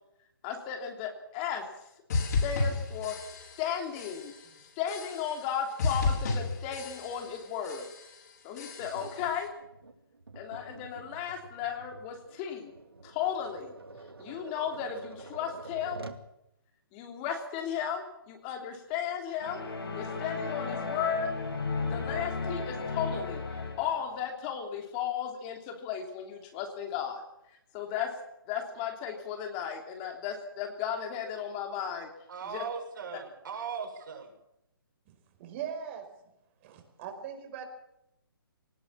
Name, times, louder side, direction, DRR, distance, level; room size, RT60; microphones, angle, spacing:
voice 1, 0.4-1.6 2.4-3.1 3.6-4.3 4.8-7.8 8.4-9.5 10.3-12.7 13.0-13.7 14.2-16.0 16.9-19.6 19.9-21.3 21.9-23.4 23.8-27.2 27.7-28.1 28.5-32.1 32.4-32.6, left 8 dB, 25° left, 3 dB, 3.0 m, -35 dB
sound 1, 2.1-3.7 3.9-4.5 4.9-5.5 5.8-7.4 7.6-8.2 8.6-9.2, left 4 dB, 50° left, 6.6 m, -32 dB
Tap, 8.8-16.3, right 3 dB, 90° right, 2.2 m, -48 dB
sound 2, 19.4-24.0, left 4 dB, 85° left, 7.9 m, -34 dB
voice 2, 32.3-34.3, right 6 dB, 60° right, 3 dB, 7.2 m, -38 dB
voice 3, 35.4-36.1 36.6-37.6, right 8 dB, 30° right, 6 dB, 5.0 m, -39 dB
20.5 x 19.0 x 7.3 m, 0.85 s
hypercardioid pair, 145°, 12 cm